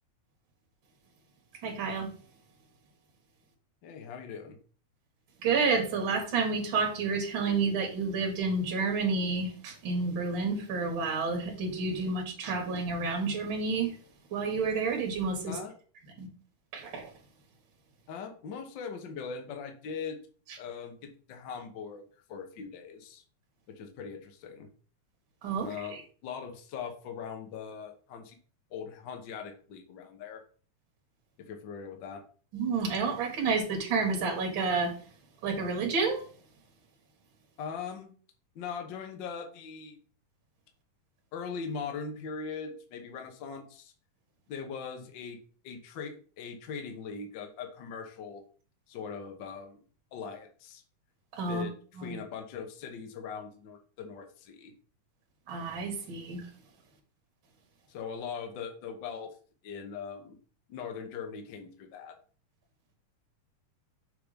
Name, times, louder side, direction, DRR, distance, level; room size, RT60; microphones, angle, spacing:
voice 1, 1.6-2.1 5.4-13.9 14.3-15.6 16.2-16.3 16.7-17.1 25.4-26.0 32.5-34.9 35.4-36.2 51.4-51.6 52.0-52.2 55.5-56.5, right 4 dB, 45° right, 1 dB, 2.1 m, -30 dB
voice 2, 3.8-4.6 15.5-15.7 18.1-20.2 20.6-22.0 22.3-23.2 23.7-24.7 25.6-28.4 28.7-30.4 31.4-32.2 37.6-38.1 38.5-40.0 41.3-43.9 44.5-45.4 45.6-48.4 48.9-49.8 50.1-50.8 51.5-54.7 57.9-59.3 59.6-60.4 60.7-62.1, left 6 dB, 80° left, 4 dB, 1.0 m, -40 dB
6.8 x 3.6 x 5.0 m, 0.41 s
omnidirectional pair, 3.7 m